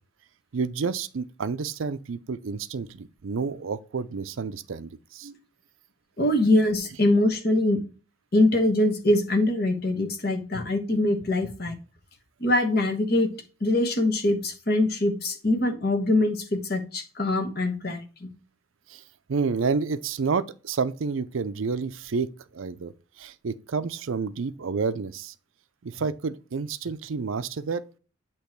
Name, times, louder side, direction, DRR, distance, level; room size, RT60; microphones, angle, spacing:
voice 1, 0.5-5.4 6.3-6.5 6.9-7.0 18.9-19.0 19.3-22.9 23.2-25.3 25.8-27.8, right 5 dB, 75° right, 0.5 m, -30 dB
voice 2, 6.2-7.8 8.3-11.8 12.4-13.3 13.6-18.3, left 1 dB, 50° left, 1.2 m, -23 dB
8.4 x 3.0 x 4.4 m
head